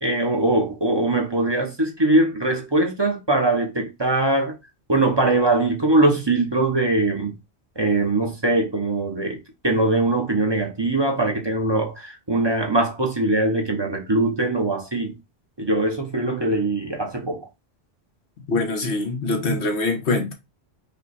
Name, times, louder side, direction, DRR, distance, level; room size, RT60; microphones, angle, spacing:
voice 1, 0.0-4.6 4.9-7.3 7.8-15.2 15.6-17.5, right 2 dB, 25° right, 0.8 m, -21 dB
voice 2, 18.5-20.3, left 2 dB, 90° left, 1.5 m, -23 dB
5.2 x 2.3 x 4.1 m
omnidirectional pair, 1.1 m